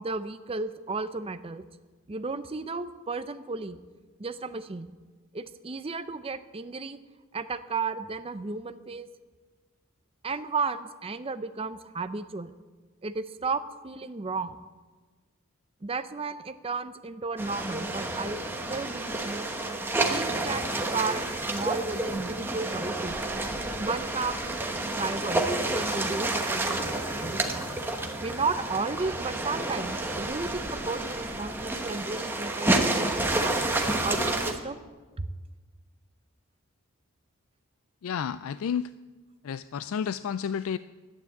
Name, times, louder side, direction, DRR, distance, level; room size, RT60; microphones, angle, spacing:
voice 1, 0.0-1.6 2.1-3.8 4.2-5.0 5.3-7.0 7.3-9.1 10.2-12.5 13.0-14.6 15.8-18.4 18.7-19.4 20.1-23.2 23.8-25.5 25.7-27.6 28.2-33.5 34.0-34.8 35.2-35.3, right 4 dB, 25° right, 12 dB, 0.5 m, -33 dB
sound 1, 17.4-34.5, right 2 dB, 10° right, 1.1 m, -30 dB
voice 2, 38.0-38.9 39.4-40.8, left 7 dB, 70° left, 15 dB, 0.3 m, -31 dB
12.0 x 9.5 x 8.4 m, 1.3 s
head